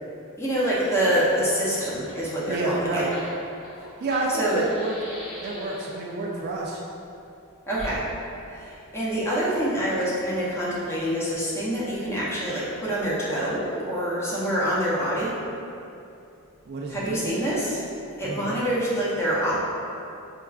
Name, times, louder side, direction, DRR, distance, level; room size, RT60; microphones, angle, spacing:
voice 1, 0.4-3.0 4.3-4.6 7.7-8.1 8.5-15.3 16.9-17.8 18.2-19.6, equal, 10° left, -8 dB, 0.6 m, -26 dB
Fire, 1.7-6.1 7.7-8.0, equal, 75° left, 1.2 m, -42 dB
voice 2, 2.5-3.1 4.0-4.9 5.4-6.8 16.7-17.3 18.2-18.6, right 2 dB, 45° right, -2 dB, 0.3 m, -29 dB
4.4 x 2.3 x 2.3 m, 2.7 s
head